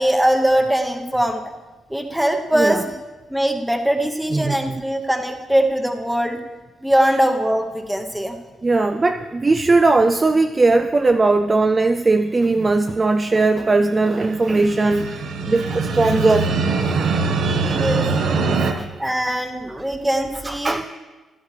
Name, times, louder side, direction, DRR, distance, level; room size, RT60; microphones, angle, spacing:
voice 1, 0.0-1.4 1.9-2.9 3.3-6.4 6.8-8.4 17.6-18.0 19.0-20.8, right 1 dB, 5° right, 4 dB, 0.9 m, -21 dB
voice 2, 2.5-2.8 4.3-4.8 7.0-7.2 8.6-16.5 17.0-17.1 18.0-18.2 18.6-18.9 19.1-19.2 19.7-19.8 20.4-20.9, right 3 dB, 20° right, 8 dB, 0.3 m, -19 dB
sound 1, 14.2-18.7, right 4 dB, 65° right, 0.9 m, -22 dB
16.0 x 11.5 x 3.3 m, 1.3 s
cardioid pair, 145°, 0 cm